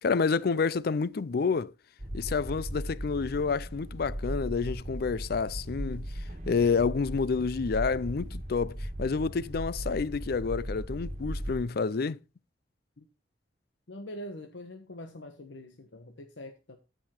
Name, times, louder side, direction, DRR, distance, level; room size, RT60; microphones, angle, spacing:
voice 1, 0.0-1.7 2.1-12.2, left 5 dB, 55° left, 0.4 m, -29 dB
sound 1, 2.0-11.6, equal, 40° right, 1.5 m, -37 dB
voice 2, 13.9-16.8, left 1 dB, 90° left, 1.2 m, -44 dB
13.5 x 5.5 x 4.4 m
head